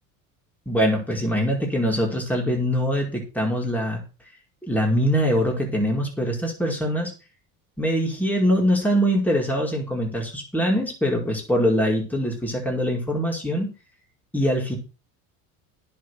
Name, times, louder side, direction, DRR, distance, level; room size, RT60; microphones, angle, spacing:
voice 1, 0.6-4.0 4.6-7.1 7.8-13.7 14.3-14.8, equal, 5° left, 0 dB, 5.0 m, -23 dB
10.0 x 7.0 x 6.8 m, 0.33 s
supercardioid pair, 105°, 40 cm